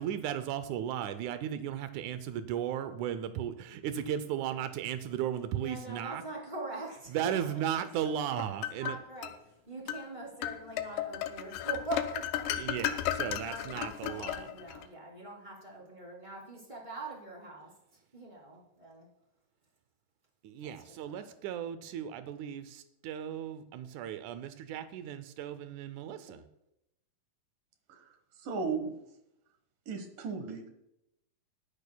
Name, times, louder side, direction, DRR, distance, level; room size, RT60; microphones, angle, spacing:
voice 1, 0.0-6.2 7.1-9.0 12.5-14.5 20.4-26.4, right 10 dB, 90° right, 11 dB, 1.7 m, -36 dB
voice 2, 5.6-9.3 9.7-12.5 13.3-17.7 18.1-19.1 21.0-21.2, right 2 dB, 15° right, -2 dB, 2.5 m, -43 dB
sound 1, 8.1-9.4 9.9-10.1 10.4-14.9, left 11 dB, 80° left, 2.2 m, -35 dB
voice 3, 28.4-29.0 29.9-30.7, right 5 dB, 70° right, 6 dB, 2.9 m, -36 dB
21.0 x 9.9 x 2.3 m, 0.83 s
omnidirectional pair, 4.2 m